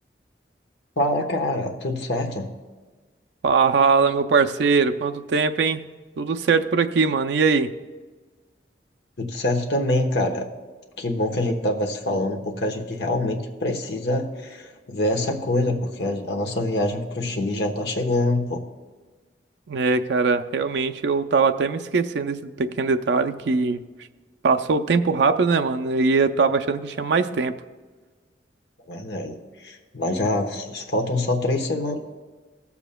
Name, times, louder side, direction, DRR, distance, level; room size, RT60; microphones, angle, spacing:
voice 1, 1.0-2.5 9.2-10.4 11.0-18.6 28.9-32.0, left 1 dB, 70° left, 1 dB, 1.1 m, -25 dB
voice 2, 3.4-5.8 6.2-7.7 19.7-23.8 24.4-27.5, right 4 dB, 80° right, 6 dB, 0.4 m, -21 dB
20.0 x 7.0 x 2.2 m, 1.3 s
head